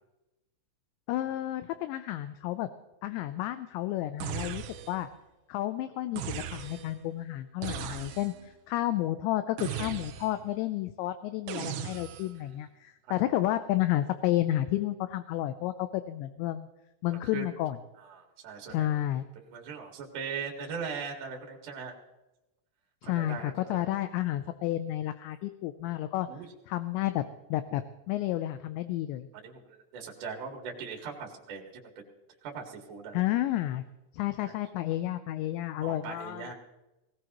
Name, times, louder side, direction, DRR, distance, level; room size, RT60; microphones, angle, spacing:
voice 1, 1.1-2.7 3.0-5.1 5.5-16.7 17.0-17.8 18.7-19.3 23.0-26.3 26.7-27.3 27.5-29.3 33.1-33.8 34.1-36.5, left 14 dB, 80° left, 11 dB, 2.7 m, -31 dB
sound 1, 4.2-5.1 6.2-7.0 7.6-8.5 9.6-10.5 11.5-12.4, right 10 dB, 75° right, 2.8 m, -38 dB
voice 2, 17.1-17.5 18.0-19.0 19.5-21.9 23.0-23.8 26.3-26.5 29.4-32.0 32.4-33.2 34.4-34.6 35.8-36.5, right 5 dB, 50° right, 1 dB, 2.9 m, -40 dB
19.5 x 18.5 x 3.0 m, 0.99 s
omnidirectional pair, 5.6 m